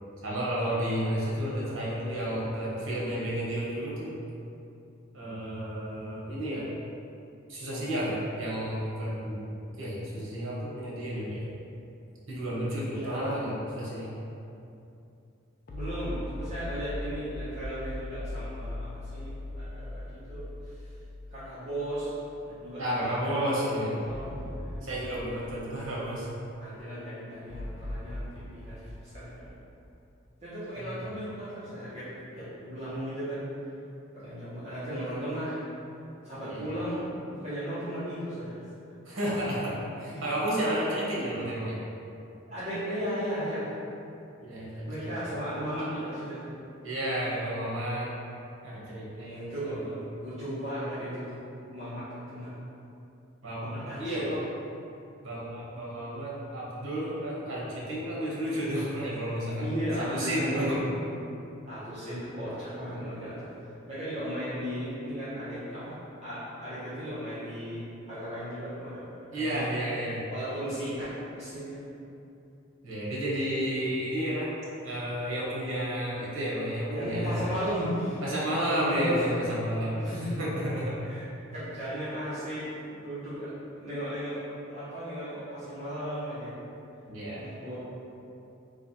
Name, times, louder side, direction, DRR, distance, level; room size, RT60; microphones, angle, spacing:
voice 1, 0.2-4.1 5.1-6.6 7.5-9.4 9.8-11.5 12.3-14.1 22.8-24.0 24.8-26.3 30.8-31.0 36.5-36.6 39.0-41.8 44.4-45.3 46.8-48.1 48.6-49.7 53.4-54.5 55.2-59.8 60.1-60.8 69.3-70.2 72.8-77.5 78.2-81.0 87.1-87.4, equal, 75° right, -6 dB, 1.0 m, -31 dB
voice 2, 12.9-13.5 15.7-20.9 21.3-24.3 24.6-24.7 25.5-25.7 26.6-29.5 30.4-32.1 32.3-33.5 34.1-35.6 36.2-38.6 40.1-40.3 42.5-43.7 44.9-46.5 49.1-51.4 51.7-52.1 52.3-52.5 53.6-54.2 59.6-61.2 61.6-66.0 66.2-67.8 68.1-69.0 69.3-69.7 70.3-71.8 76.9-78.2 78.7-79.4 79.9-80.3 81.0-81.2 81.5-83.5 83.8-84.4 84.7-86.5 87.3-87.8, equal, 30° right, -14 dB, 0.9 m, -36 dB
sound 1, 15.7-22.0 22.4-22.5 24.1-26.5 27.5-30.3, left 1 dB, 45° left, 0.4 m, -39 dB
3.2 x 2.3 x 4.0 m, 2.7 s
head